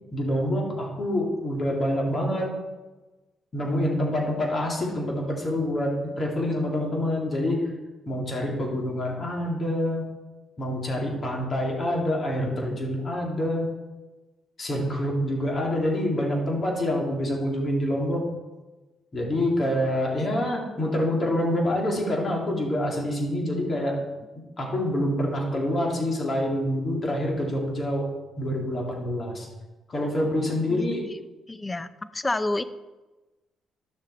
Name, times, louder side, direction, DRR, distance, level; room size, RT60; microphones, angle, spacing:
voice 1, 0.1-2.5 3.5-5.9 6.2-7.6 8.1-10.1 10.6-13.7 14.6-18.2 19.1-24.0 24.6-28.1 28.4-29.5 29.9-31.1, left 1 dB, 40° left, 0 dB, 2.5 m, -26 dB
voice 2, 31.5-32.6, left 2 dB, 20° left, 14 dB, 0.5 m, -28 dB
11.5 x 6.5 x 4.2 m, 1.2 s
cardioid pair, 90°, 0 cm